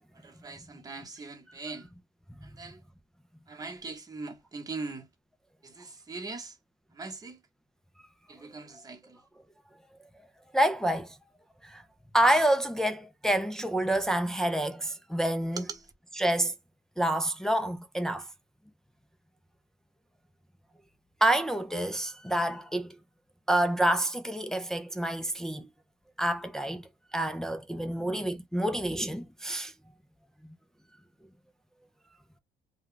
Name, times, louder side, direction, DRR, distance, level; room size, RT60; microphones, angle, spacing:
voice 1, 0.1-1.9 2.4-2.8 3.5-5.1 5.6-6.6 6.9-7.4 8.3-9.2 15.5-15.9, right 3 dB, 20° right, 1.0 m, -41 dB
voice 2, 10.5-11.2 11.6-11.8 12.1-15.6 16.2-16.5 17.0-18.3 21.2-22.9 23.5-25.7 26.2-29.7, right 1 dB, 5° left, 0.4 m, -28 dB
2.3 x 2.2 x 3.7 m
cardioid pair, 110°, 17 cm